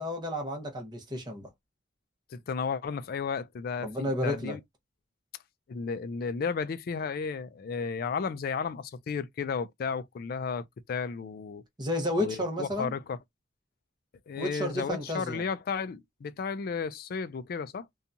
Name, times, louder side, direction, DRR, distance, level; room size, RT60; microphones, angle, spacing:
voice 1, 0.0-1.5 3.8-4.6 11.8-12.9 14.4-15.4, left 1 dB, 20° right, 0.9 m, -32 dB
voice 2, 2.3-4.6 5.7-11.6 12.2-13.2 14.3-17.9, left 5 dB, 50° left, 0.3 m, -33 dB
2.7 x 2.3 x 2.5 m
head